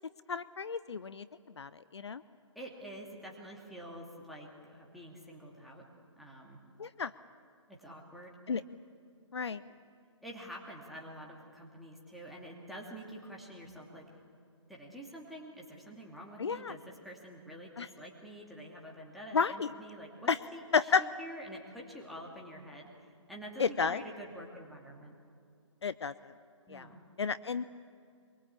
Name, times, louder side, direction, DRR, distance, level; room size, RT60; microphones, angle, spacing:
voice 1, 0.3-1.3 1.6-2.2 6.8-7.1 8.5-8.6 9.3-9.6 16.4-16.7 17.8-17.9 19.3-19.7 20.3-20.4 20.7-21.0 23.6-24.0 25.8-26.3 26.7-26.9 27.2-27.6, left 5 dB, 60° left, 15 dB, 0.6 m, -31 dB
voice 2, 2.5-5.9 6.2-6.6 7.7-8.4 9.5-9.6 10.2-14.1 14.7-25.1 26.7-27.0, equal, ahead, -2 dB, 2.7 m, -47 dB
24.0 x 23.0 x 8.5 m, 2.4 s
figure-of-eight pair, 135°, 16 cm